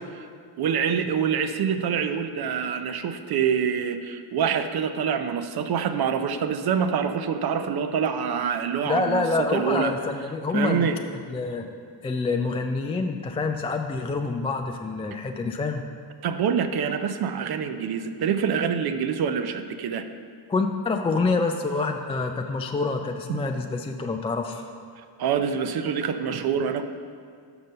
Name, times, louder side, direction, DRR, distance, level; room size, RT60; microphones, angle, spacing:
voice 1, 0.6-9.9 10.5-11.0 16.2-20.0 23.3-23.4 25.2-26.8, right 7 dB, 55° right, 8 dB, 0.6 m, -26 dB
voice 2, 8.9-10.9 11.3-11.6 12.0-15.8 20.5-24.6, left 3 dB, 15° left, 4 dB, 0.3 m, -26 dB
6.0 x 5.3 x 6.5 m, 2.2 s
cardioid pair, 85°, 45 cm